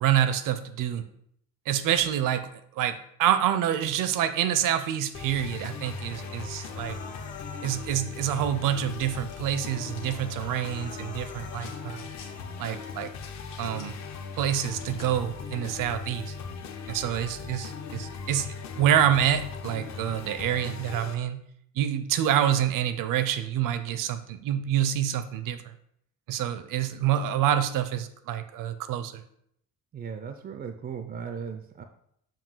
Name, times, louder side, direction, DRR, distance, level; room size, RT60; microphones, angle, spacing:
voice 1, 0.0-1.0 1.7-7.0 7.6-12.1 12.6-13.1 13.6-13.9 14.4-16.4 16.9-21.4 21.8-25.7 26.3-29.2, right 10 dB, 70° right, 11 dB, 0.6 m, -27 dB
sound 1, 5.1-21.1, left 5 dB, 55° left, 0.7 m, -39 dB
Human voice, 5.8-7.9 8.2-8.9 9.3-9.4 9.7-11.8 12.2-12.8, left 3 dB, 25° left, 0.5 m, -48 dB
sound 2, 8.5-10.4 11.6-12.3 12.7-14.1 14.4-15.2, left 5 dB, 70° left, 1.2 m, -52 dB
voice 2, 29.9-31.8, right 6 dB, 30° right, 7 dB, 0.4 m, -37 dB
7.5 x 2.7 x 5.5 m, 0.71 s
cardioid pair, 160°, 33 cm